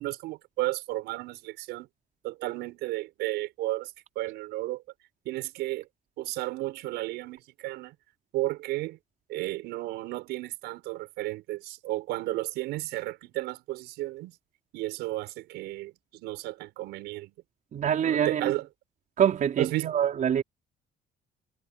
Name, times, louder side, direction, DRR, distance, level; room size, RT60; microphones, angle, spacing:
voice 1, 0.0-1.9 2.2-4.8 5.2-5.9 6.2-7.9 8.3-9.0 9.3-14.3 14.7-17.3 18.0-18.7 19.6-19.9, right 18 dB, 90° right, 6.1 m, -33 dB
voice 2, 17.7-18.5 19.2-20.4, right 9 dB, 50° right, 4.3 m, -25 dB
cardioid pair, 110°, 17 cm